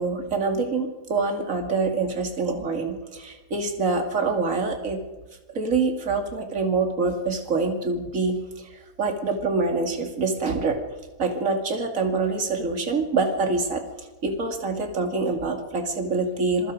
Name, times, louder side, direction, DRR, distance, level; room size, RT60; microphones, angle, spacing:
voice 1, 0.0-5.0 5.5-10.8 11.2-13.8 14.2-16.7, right 3 dB, 35° right, 4 dB, 2.8 m, -25 dB
27.0 x 22.5 x 5.2 m, 1.2 s
omnidirectional pair, 2.4 m